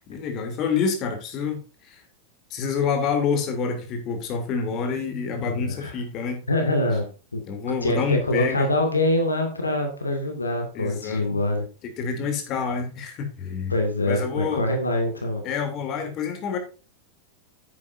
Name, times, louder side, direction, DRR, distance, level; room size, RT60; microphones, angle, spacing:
voice 1, 0.1-2.0 2.5-6.4 7.5-8.7 10.7-11.4 11.8-13.7 14.1-14.7 15.4-16.6, left 5 dB, 35° left, 3.1 m, -27 dB
voice 2, 5.4-5.9 6.5-7.0 7.3-7.4 7.8-11.6 13.7-15.4, left 1 dB, 80° left, 2.2 m, -24 dB
9.8 x 9.6 x 2.6 m
figure-of-eight pair, 90°, 0 cm